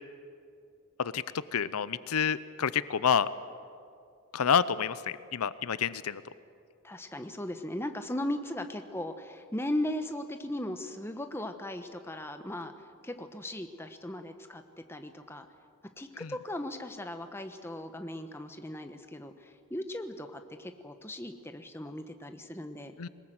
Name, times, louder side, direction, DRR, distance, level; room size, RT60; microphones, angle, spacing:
voice 1, 1.5-3.3 4.3-5.0 5.3-6.2 16.2-16.3 23.0-23.1, left 7 dB, 85° left, 16 dB, 0.6 m, -28 dB
voice 2, 6.8-12.7 13.0-14.6 14.9-15.5 16.0-22.9, left 1 dB, 10° left, 7 dB, 1.0 m, -37 dB
22.0 x 20.0 x 7.9 m, 2.4 s
head